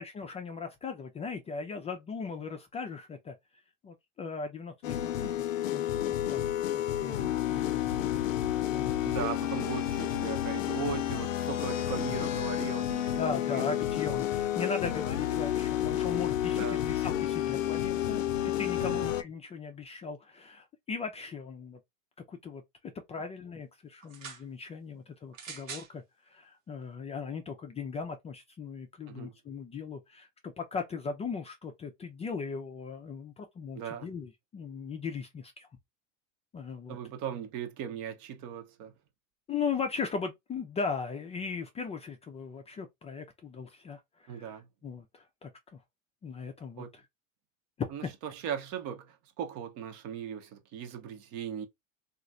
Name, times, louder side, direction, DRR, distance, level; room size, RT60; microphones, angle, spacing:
voice 1, 0.0-3.3 3.8-5.3 5.7-8.3 8.7-9.3 13.2-21.8 22.3-22.6 23.1-35.7 36.5-37.0 39.5-45.8 46.2-47.0 47.8-48.1, left 5 dB, 15° left, 0.4 m, -38 dB
sound 1, 4.8-19.2, left 12 dB, 85° left, 0.5 m, -30 dB
voice 2, 9.0-13.8 16.5-16.8 18.8-19.1 29.1-29.3 33.7-34.1 36.9-38.9 44.3-44.7 46.8-46.9 47.9-51.7, right 8 dB, 50° right, 0.8 m, -38 dB
sound 2, 24.0-24.5 25.3-25.9 26.8-26.9, right 6 dB, 80° right, 1.2 m, -43 dB
3.0 x 2.5 x 2.4 m
hypercardioid pair, 95°, 38 cm